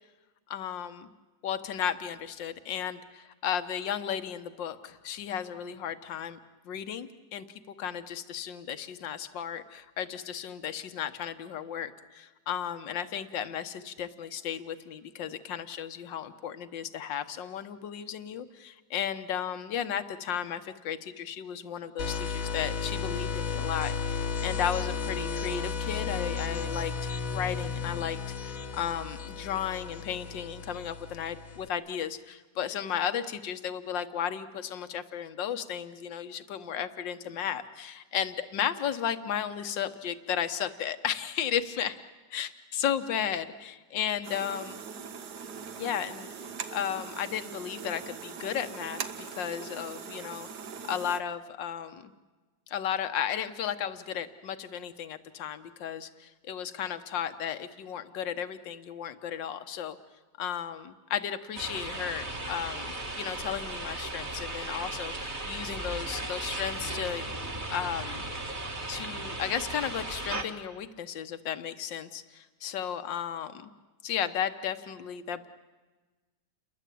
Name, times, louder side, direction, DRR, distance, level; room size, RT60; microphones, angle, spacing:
voice 1, 0.5-1.1 1.4-6.4 6.7-7.5 7.8-28.2 28.4-42.0 42.3-44.8 45.8-46.3 46.7-50.5 50.8-52.1 52.7-60.0 60.4-67.3 67.7-68.3 68.9-73.7 74.0-75.5, left 9 dB, 65° left, 10 dB, 1.8 m, -34 dB
sound 1, 22.0-31.7, left 5 dB, 45° left, 1.5 m, -34 dB
sound 2, 44.2-51.2, right 6 dB, 60° right, 1.6 m, -41 dB
sound 3, 61.5-70.4, right 2 dB, 25° right, 2.0 m, -36 dB
29.5 x 22.0 x 8.5 m, 1.3 s
omnidirectional pair, 2.2 m